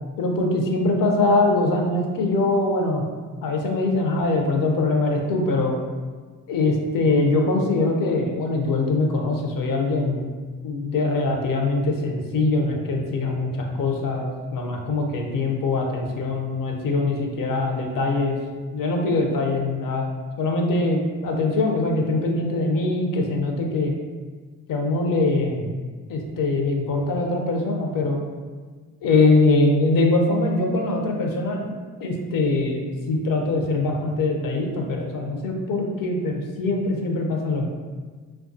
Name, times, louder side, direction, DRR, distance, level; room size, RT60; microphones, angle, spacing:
voice 1, 0.2-3.0 3.4-5.8 6.5-10.3 10.6-18.4 18.7-20.1 20.4-23.9 24.7-25.7 26.1-28.2 29.0-31.7 32.0-37.7, left 2 dB, 60° left, 1 dB, 0.6 m, -22 dB
2.3 x 2.3 x 2.5 m, 1.4 s
supercardioid pair, 65°, 37 cm